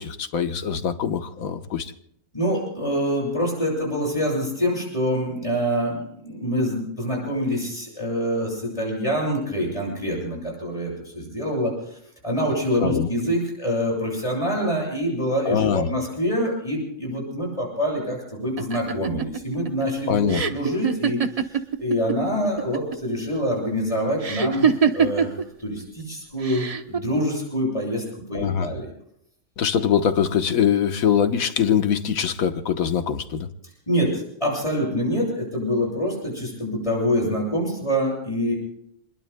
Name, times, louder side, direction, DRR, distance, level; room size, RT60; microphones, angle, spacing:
voice 1, 0.0-1.9 12.8-13.1 15.4-15.9 20.1-20.4 28.3-28.7 29.6-33.5, left 8 dB, 85° left, 8 dB, 1.5 m, -23 dB
voice 2, 2.3-21.2 21.4-25.3 25.6-28.0 28.3-28.9 33.9-38.5, equal, 25° left, -2 dB, 7.8 m, -25 dB
sound 1, 18.6-22.2 22.4-23.1 24.2-25.4 26.4-27.0, right 6 dB, 35° right, 0.8 m, -23 dB
28.5 x 21.5 x 2.2 m, 0.73 s
omnidirectional pair, 1.4 m